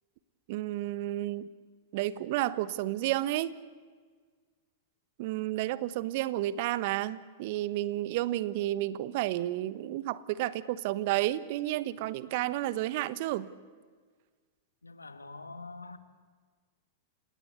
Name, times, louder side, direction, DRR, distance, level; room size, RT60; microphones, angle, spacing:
voice 1, 0.5-1.5 1.9-3.5 5.2-13.5, right 15 dB, 50° right, 1.1 m, -31 dB
voice 2, 14.8-16.0, left 3 dB, 85° left, 1.6 m, -45 dB
30.0 x 18.0 x 8.3 m
figure-of-eight pair, 100°, 0 cm